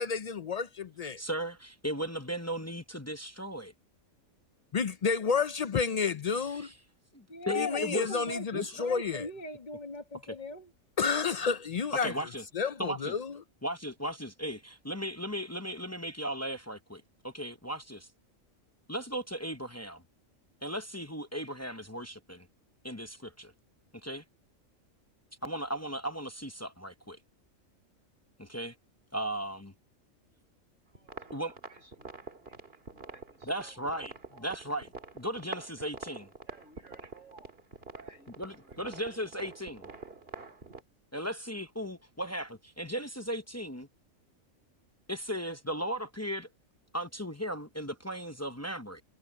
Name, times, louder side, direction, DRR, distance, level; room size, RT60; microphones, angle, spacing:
voice 1, 0.0-1.2 4.7-6.7 7.5-9.3 11.0-12.1 12.5-13.4, left 5 dB, 75° left, 0.3 m, -30 dB
voice 2, 1.2-3.7 6.5-6.7 7.1-8.2 8.5-8.7 10.2-10.4 12.0-12.4 12.8-13.1 13.6-18.1 18.9-20.0 20.6-22.5 22.8-23.5 24.0-24.2 25.4-27.2 28.4-28.7 29.1-29.7 31.3-31.5 33.4-34.9 35.1-36.3 38.4-39.9 41.1-43.9 45.1-46.5 46.9-49.0, equal, 15° left, 0.6 m, -36 dB
voice 3, 7.3-10.7, left 3 dB, 35° left, 1.7 m, -39 dB
sound 1, 30.9-40.8, right 3 dB, 45° right, 2.1 m, -46 dB
voice 4, 30.9-33.8 34.3-34.6 35.5-35.9 36.5-38.8, right 3 dB, 70° right, 6.9 m, -59 dB
omnidirectional pair, 1.4 m